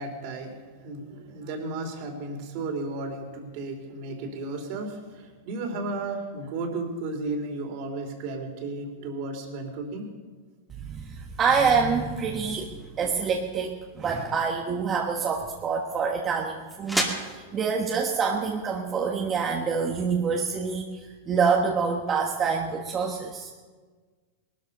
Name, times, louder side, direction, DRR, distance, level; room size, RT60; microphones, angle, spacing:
voice 1, 0.0-10.1, right 2 dB, 50° right, 4 dB, 3.4 m, -34 dB
voice 2, 10.7-23.5, right 5 dB, 25° right, 1 dB, 1.3 m, -26 dB
sound 1, 14.6-20.1, right 1 dB, ahead, 2.4 m, -37 dB
19.0 x 13.0 x 5.4 m, 1.4 s
supercardioid pair, 140°, 0 cm